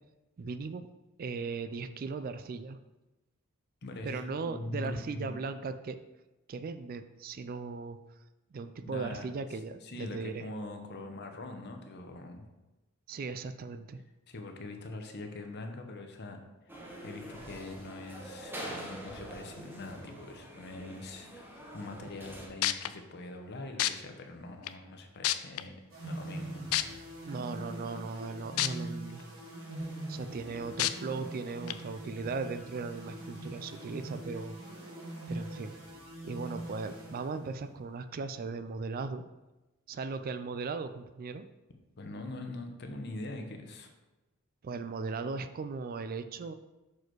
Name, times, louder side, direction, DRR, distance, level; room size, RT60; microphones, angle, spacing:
voice 1, 0.4-0.9 1.2-2.8 4.0-6.0 6.5-8.0 8.5-10.5 13.1-14.0 27.3-29.3 30.1-34.6 35.3-35.8 36.2-39.2 39.9-41.5 44.6-46.5, right 4 dB, 45° right, 11 dB, 0.3 m, -38 dB
voice 2, 3.8-5.4 8.8-9.3 9.8-12.5 14.3-16.4 17.0-25.7 26.0-26.6 42.0-43.9, left 2 dB, 55° left, 5 dB, 0.9 m, -43 dB
sound 1, 16.7-22.5, right 1 dB, 10° right, 1.0 m, -45 dB
sound 2, 22.3-22.4 22.6-22.9 23.8-23.9 24.7-24.8 25.2-25.6 26.7-26.8 28.6-28.7 29.2-29.3 30.8-30.9 31.7-31.8, left 14 dB, 80° left, 0.4 m, -27 dB
sound 3, 25.9-37.8, right 1 dB, 70° right, 1.7 m, -43 dB
6.2 x 4.8 x 4.6 m, 1.1 s
head